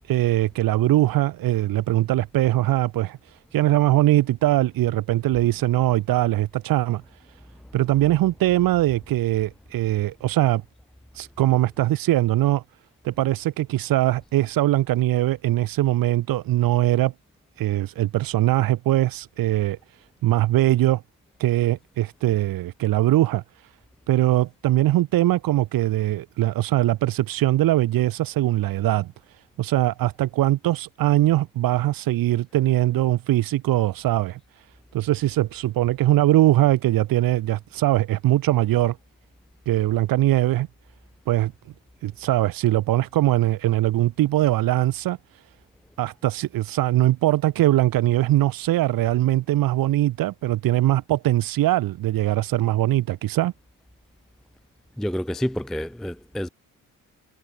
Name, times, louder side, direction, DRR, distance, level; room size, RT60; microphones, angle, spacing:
voice 1, 0.1-7.0 7.7-10.6 11.1-12.6 13.0-17.1 17.6-19.8 20.2-21.0 21.4-23.7 24.1-34.7 34.9-39.0 39.7-40.7 41.3-41.5 42.0-45.4 46.0-53.5, right 15 dB, 80° right, 1.1 m, -21 dB
voice 2, 55.0-56.5, equal, ahead, 0.4 m, -28 dB
cardioid pair, 105°, 34 cm